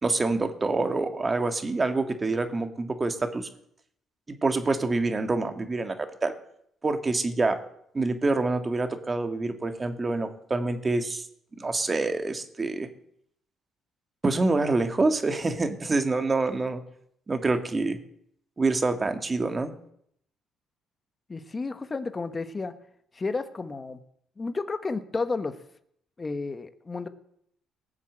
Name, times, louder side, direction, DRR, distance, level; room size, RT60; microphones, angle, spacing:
voice 1, 0.0-3.5 4.3-6.3 6.8-7.6 7.9-11.3 11.6-12.9 14.2-16.8 17.3-18.0 18.6-19.7, right 3 dB, 25° right, 7 dB, 1.9 m, -26 dB
voice 2, 21.3-22.7 23.1-24.0 24.4-25.5 26.2-27.1, left 3 dB, 30° left, 10 dB, 1.4 m, -31 dB
18.5 x 7.3 x 7.9 m, 0.71 s
supercardioid pair, 80°, 0 cm